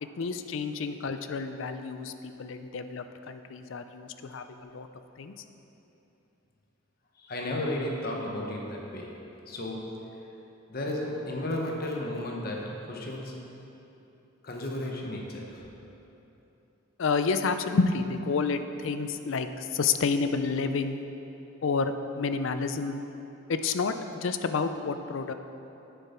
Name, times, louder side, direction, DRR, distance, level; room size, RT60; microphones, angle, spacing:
voice 1, 0.2-4.9 5.2-5.3 17.0-21.0 21.6-23.0 23.5-23.9 24.2-25.3, left 4 dB, 65° left, 9 dB, 0.4 m, -29 dB
voice 2, 7.2-9.2 9.5-10.2 10.7-13.5 14.4-15.7, left 1 dB, 45° left, 0 dB, 1.0 m, -34 dB
9.3 x 7.0 x 4.4 m, 3.0 s
head